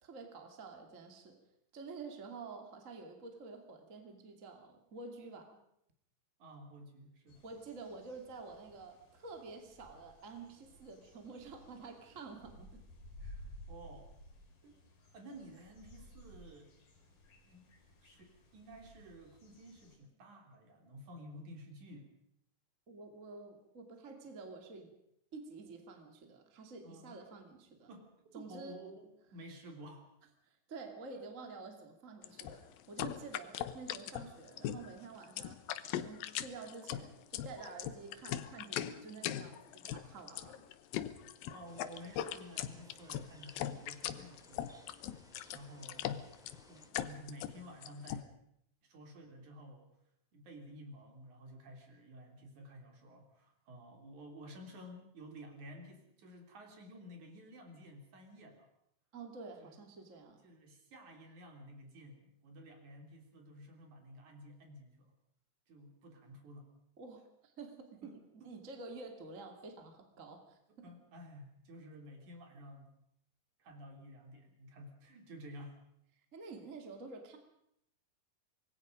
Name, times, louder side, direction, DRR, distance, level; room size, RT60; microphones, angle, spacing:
voice 1, 0.0-1.4 1.7-5.6 7.4-12.8 22.9-24.9 25.3-27.9 28.3-28.8 30.4-35.6 36.0-40.6 59.1-60.4 67.0-68.2 68.4-70.9 76.3-77.4, right 4 dB, 25° right, 4 dB, 2.5 m, -49 dB
voice 2, 6.4-7.4 13.2-14.1 14.6-14.8 15.1-16.7 17.5-17.7 18.0-22.1 26.8-27.2 27.9-30.1 32.6-32.7 41.5-44.8 45.5-46.1 46.7-48.3 48.8-49.9 50.3-58.7 59.6-59.7 60.4-65.1 65.7-66.7 68.0-68.1 68.4-68.5 70.8-72.9 73.6-75.8, equal, 60° right, 3 dB, 4.7 m, -52 dB
sound 1, 7.3-20.0, left 1 dB, 65° left, 5.2 m, -56 dB
sound 2, 32.2-48.2, left 11 dB, 90° left, 2.8 m, -40 dB
sound 3, 41.6-46.9, equal, ahead, 2.5 m, -63 dB
26.0 x 21.5 x 5.2 m, 0.75 s
omnidirectional pair, 4.0 m